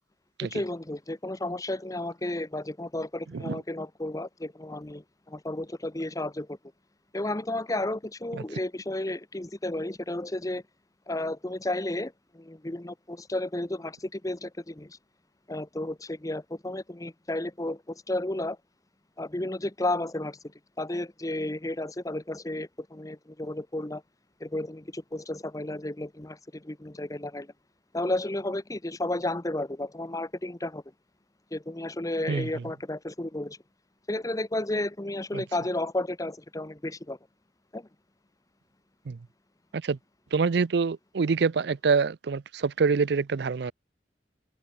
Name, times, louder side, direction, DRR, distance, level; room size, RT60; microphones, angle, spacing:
voice 1, 0.4-6.6 7.1-10.6 11.1-15.0 15.5-18.6 19.2-20.4 20.8-24.0 24.4-27.5 27.9-30.8 31.5-33.6 34.1-37.2 37.7-37.9, left 1 dB, 20° left, 1.0 m, -32 dB
voice 2, 40.3-43.7, right 5 dB, 65° right, 0.5 m, -26 dB
head